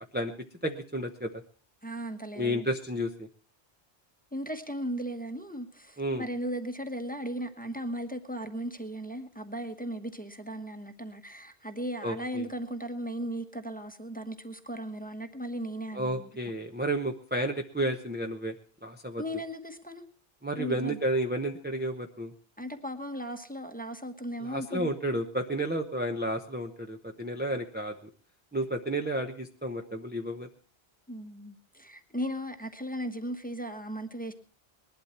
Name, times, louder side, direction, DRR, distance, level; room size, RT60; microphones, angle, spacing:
voice 1, 0.6-1.4 2.3-3.3 6.0-6.3 12.0-12.5 15.9-18.5 18.8-19.2 20.4-22.3 24.4-28.1 28.5-30.5, right 1 dB, 10° right, 3 dB, 0.9 m, -31 dB
voice 2, 1.8-2.7 4.3-16.2 19.2-20.0 20.5-21.0 22.6-24.9 31.1-34.3, equal, 10° left, 6 dB, 1.2 m, -36 dB
20.0 x 12.0 x 4.3 m, 0.40 s
omnidirectional pair, 1.1 m